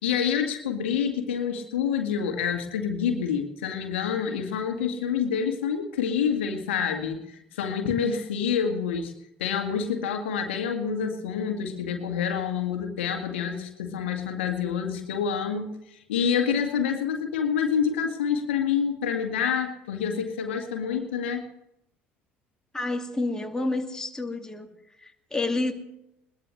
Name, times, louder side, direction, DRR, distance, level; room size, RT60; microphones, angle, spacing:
voice 1, 0.0-9.1 9.4-21.4, left 7 dB, 75° left, 4 dB, 2.0 m, -27 dB
voice 2, 22.7-24.7 25.0-25.7, left 2 dB, 10° left, 3 dB, 2.3 m, -29 dB
21.5 x 20.0 x 3.3 m, 0.82 s
figure-of-eight pair, 60°, 6 cm